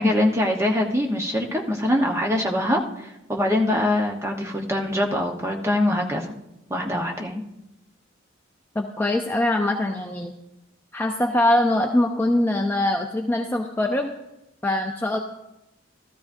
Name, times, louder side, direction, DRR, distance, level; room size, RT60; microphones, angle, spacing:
voice 1, 0.0-6.3 6.7-7.4, left 1 dB, 15° right, 1 dB, 1.0 m, -23 dB
voice 2, 8.8-10.4 10.9-14.1 14.6-15.2, left 1 dB, 10° left, 2 dB, 0.5 m, -23 dB
14.0 x 13.0 x 2.6 m, 0.92 s
head